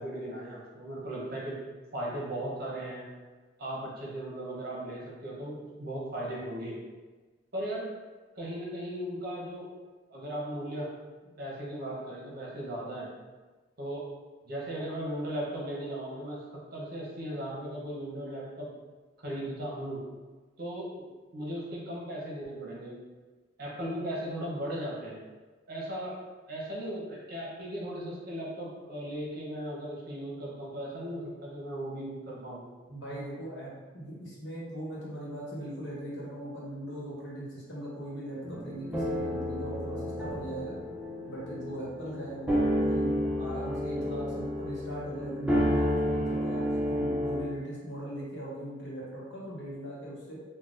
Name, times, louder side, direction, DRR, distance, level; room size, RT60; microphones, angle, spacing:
voice 1, 0.0-1.6 1.9-3.1 3.6-6.8 7.5-7.9 8.4-9.7 10.1-10.9 11.2-13.1 13.8-14.0 14.5-16.4 16.7-18.7 19.2-20.0 20.6-23.0 23.6-25.2 25.7-26.2 26.5-32.6, right 1 dB, 50° right, -4 dB, 0.8 m, -37 dB
voice 2, 32.9-40.7 41.3-50.4, right 1 dB, 65° left, -6 dB, 1.0 m, -40 dB
sound 1, 38.4-47.4, equal, 5° right, 0.4 m, -30 dB
3.7 x 2.2 x 2.4 m, 1.3 s
head